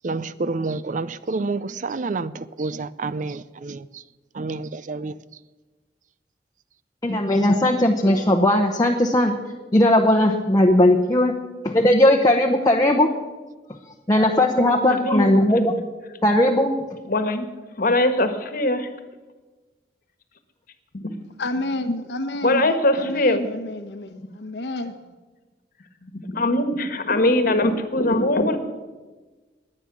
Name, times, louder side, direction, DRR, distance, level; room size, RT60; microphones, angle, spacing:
voice 1, 0.0-4.0 4.3-5.1, right 3 dB, 45° right, 17 dB, 0.5 m, -29 dB
voice 2, 7.0-9.3 9.7-11.3 11.6-13.1 14.1-15.7 16.2-16.7, left 1 dB, 20° left, 2 dB, 1.0 m, -18 dB
voice 3, 14.9-15.3 17.1-17.5 17.8-18.9 20.9-21.1 22.4-23.6 24.1-24.2 26.1-28.6, left 1 dB, 55° left, 8 dB, 1.5 m, -21 dB
voice 4, 21.4-25.0, left 1 dB, 70° left, 7 dB, 1.0 m, -30 dB
20.5 x 8.8 x 6.1 m, 1.3 s
head